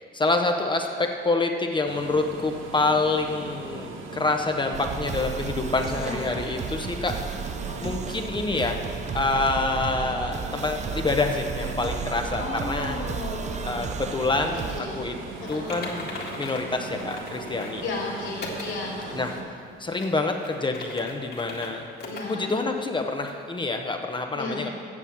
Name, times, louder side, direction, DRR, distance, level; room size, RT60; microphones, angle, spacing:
voice 1, 0.1-7.5 7.8-8.8 9.1-13.0 13.6-15.2 15.5-16.1 16.4-17.8 19.1-19.3 19.8-21.9 22.2-24.7, left 3 dB, 25° left, 3 dB, 0.8 m, -27 dB
sound 1, 1.9-19.4, right 4 dB, 85° right, 1.0 m, -39 dB
sound 2, 4.7-14.8, right 6 dB, 35° right, 0.5 m, -34 dB
voice 2, 12.4-13.8 14.7-15.0 15.4-15.8 17.8-19.4 19.8-20.2 22.0-22.5 24.3-24.6, left 3 dB, 70° left, -3 dB, 2.8 m, -34 dB
Typing, 15.5-17.8 18.4-18.7 19.2-19.3 19.9-21.7 22.0-22.2 22.6-22.7 23.3-23.4, left 3 dB, 55° left, 1.9 m, -38 dB
8.5 x 6.8 x 7.4 m, 2.3 s
cardioid pair, 90°, 20 cm